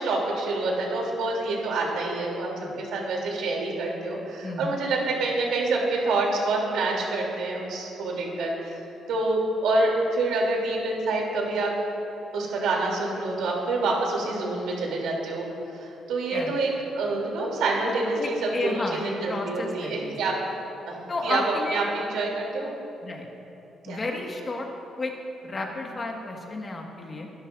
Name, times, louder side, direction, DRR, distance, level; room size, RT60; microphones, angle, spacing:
voice 1, 0.0-2.5 2.8-8.8 9.1-11.7 12.3-15.4 15.8-16.7 17.0-18.4 18.6-20.3 20.9-21.0 21.2-21.4 21.7-22.7 23.9-24.0, right 2 dB, 85° right, -2 dB, 3.4 m, -27 dB
voice 2, 4.4-4.8 16.3-16.6 18.2-20.2 21.1-21.9 23.0-23.3 23.8-24.7 25.0-25.1 25.4-27.3, left 2 dB, 35° left, 0 dB, 2.0 m, -32 dB
24.0 x 12.0 x 2.7 m, 2.9 s
cardioid pair, 90°, 0 cm